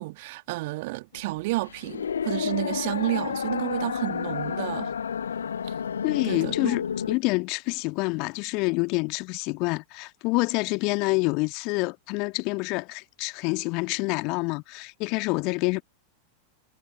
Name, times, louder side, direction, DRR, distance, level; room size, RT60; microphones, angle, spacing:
voice 1, 0.0-4.9 5.6-5.7 6.2-6.8, right 21 dB, 50° right, 2.1 m, -31 dB
sound 1, 1.2-7.2, left 7 dB, 70° left, 0.5 m, -30 dB
voice 2, 6.0-15.8, left 28 dB, 45° left, 1.5 m, -27 dB
figure-of-eight pair, 90°, 0 cm